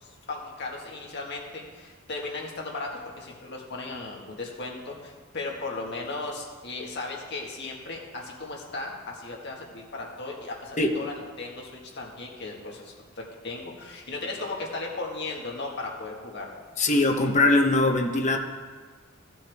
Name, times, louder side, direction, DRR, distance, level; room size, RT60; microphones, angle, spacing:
voice 1, 0.0-16.5, left 3 dB, 55° left, -1 dB, 1.7 m, -36 dB
voice 2, 16.8-18.4, left 2 dB, 35° left, 3 dB, 0.9 m, -21 dB
15.0 x 7.1 x 3.5 m, 1.4 s
head